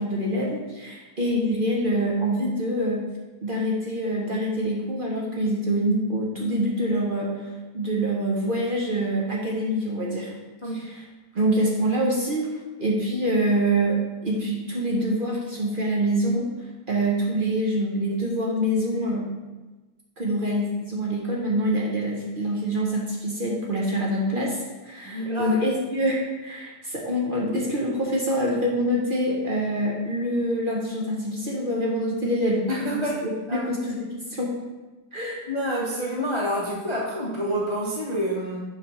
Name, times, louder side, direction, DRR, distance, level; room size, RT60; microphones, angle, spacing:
voice 1, 0.0-3.0 3.4-7.4 7.7-10.3 10.9-11.0 11.3-12.5 12.8-16.5 16.9-19.3 20.2-33.1 33.5-34.5 35.1-35.4, right 1 dB, 40° right, -3 dB, 0.9 m, -25 dB
voice 2, 25.1-25.6 32.7-33.2 33.5-33.7 35.5-38.6, equal, 25° left, -4 dB, 0.6 m, -27 dB
7.0 x 3.4 x 5.5 m, 1.2 s
omnidirectional pair, 1.7 m